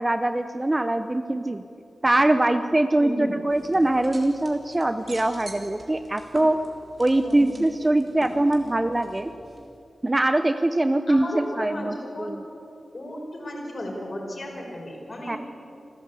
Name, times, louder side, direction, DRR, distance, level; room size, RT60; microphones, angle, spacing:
voice 1, 0.0-1.6 2.0-6.6 7.0-9.3 10.0-12.4 15.3-15.4, right 1 dB, 20° right, 9 dB, 0.8 m, -23 dB
voice 2, 3.0-3.4 7.2-7.7 11.1-12.3 12.9-15.4, left 1 dB, 45° left, 0 dB, 5.6 m, -34 dB
sound 1, 3.5-9.8, right 1 dB, 40° right, 4.0 m, -45 dB
28.5 x 14.5 x 8.4 m, 2.7 s
wide cardioid pair, 90°, 0 cm